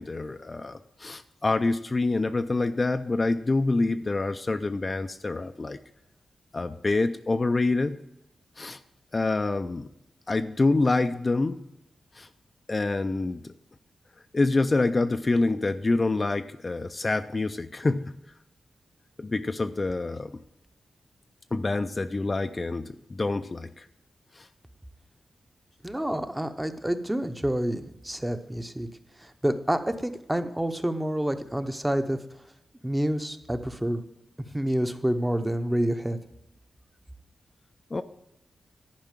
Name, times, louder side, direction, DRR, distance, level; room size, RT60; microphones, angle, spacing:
voice 1, 0.0-5.8 6.5-8.0 8.6-8.8 9.1-9.9 10.3-11.7 12.1-12.3 12.7-13.5 14.3-18.1 19.2-20.4 21.5-23.9 24.3-24.5 37.9-38.0, left 3 dB, 35° left, 8 dB, 0.4 m, -26 dB
voice 2, 25.8-28.9 29.4-32.2 32.8-34.0 34.5-36.2, right 1 dB, 10° right, 8 dB, 0.8 m, -28 dB
10.5 x 4.8 x 7.4 m, 0.84 s
cardioid pair, 70°, 0 cm